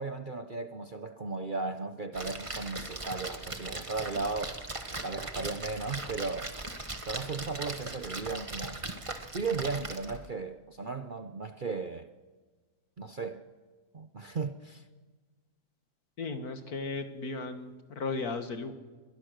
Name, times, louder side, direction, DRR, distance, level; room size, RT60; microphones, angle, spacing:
voice 1, 0.0-4.6 5.0-6.5 7.1-8.8 9.3-12.1 13.0-13.5 13.9-14.8, right 4 dB, 40° right, 0.8 m, -36 dB
Splash splatter, 2.1-10.3, right 2 dB, 20° right, 1.4 m, -39 dB
voice 2, 16.2-18.7, left 3 dB, 65° left, 2.2 m, -35 dB
27.5 x 22.5 x 6.6 m
omnidirectional pair, 1.8 m